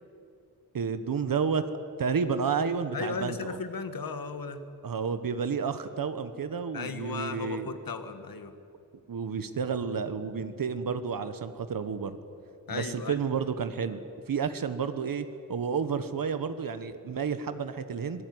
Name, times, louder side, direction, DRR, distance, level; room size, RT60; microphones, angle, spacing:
voice 1, 0.7-1.6 2.0-3.6 4.8-7.7 9.1-12.2 12.7-14.0 14.3-18.2, right 6 dB, 70° right, 10 dB, 1.2 m, -31 dB
voice 2, 2.9-4.6 6.7-8.5 12.7-13.2, left 5 dB, 75° left, 9 dB, 1.7 m, -36 dB
26.0 x 18.5 x 9.5 m, 2.5 s
wide cardioid pair, 150°, 35 cm